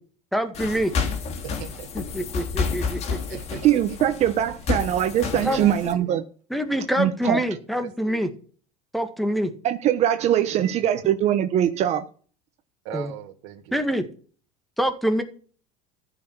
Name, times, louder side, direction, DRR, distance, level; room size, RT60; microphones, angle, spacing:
voice 1, 0.3-0.9 2.1-3.4 5.4-5.7 6.5-8.3 8.9-9.5 12.9-13.1 13.7-14.0 14.8-15.2, equal, ahead, 9 dB, 1.9 m, -25 dB
sound 1, 0.5-5.9, left 5 dB, 40° left, 3.3 m, -30 dB
voice 2, 1.4-1.9 3.3-4.1 5.4-6.1 8.0-8.2 12.8-13.8, right 10 dB, 70° right, 3 dB, 1.7 m, -38 dB
voice 3, 3.6-6.2 7.0-7.4 9.6-12.0, right 11 dB, 45° right, 9 dB, 1.2 m, -22 dB
14.5 x 6.1 x 8.0 m, 0.42 s
supercardioid pair, 135°, 16 cm